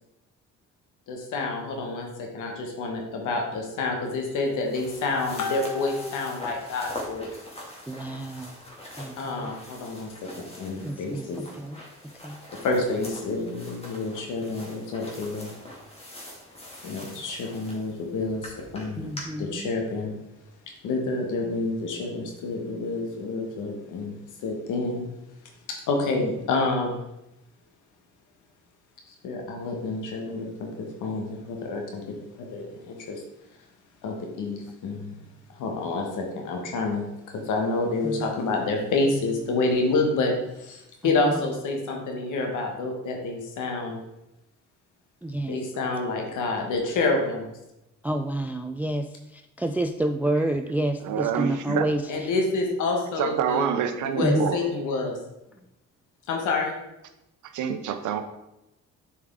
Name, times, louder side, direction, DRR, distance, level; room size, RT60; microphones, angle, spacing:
voice 1, 1.1-7.3 9.2-11.4 12.6-15.5 16.8-19.1 19.4-20.1 20.8-24.2 24.4-25.0 25.7-27.0 29.2-33.2 34.0-35.2 35.5-37.1 37.3-44.0 45.5-47.5 52.1-53.7 54.0-55.2 56.3-56.7, left 3 dB, 85° left, 1 dB, 1.5 m, -28 dB
sound 1, 4.0-19.2, left 1 dB, 20° left, 2.1 m, -44 dB
voice 2, 7.9-8.6 9.0-9.5 10.8-11.8 12.2-12.4 19.0-19.7 38.0-38.3 41.2-41.4 45.2-45.6 48.0-49.1 49.3-52.0 54.2-54.5, right 1 dB, 5° right, 6 dB, 0.3 m, -28 dB
voice 3, 51.0-51.9 53.2-54.6 57.5-58.2, right 8 dB, 80° right, 9 dB, 0.8 m, -27 dB
7.3 x 4.7 x 3.7 m, 0.89 s
cardioid pair, 90°, 30 cm